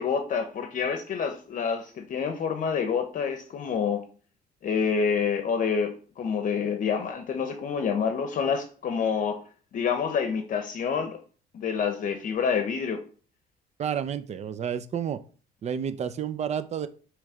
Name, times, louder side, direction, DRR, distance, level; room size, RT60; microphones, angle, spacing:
voice 1, 0.0-4.0 4.6-9.4 9.7-11.2 11.5-13.0, left 6 dB, 50° left, 7 dB, 0.8 m, -27 dB
voice 2, 13.8-15.2 15.6-16.9, right 8 dB, 40° right, 12 dB, 0.6 m, -30 dB
6.2 x 3.3 x 4.9 m, 0.40 s
cardioid pair, 110°, 17 cm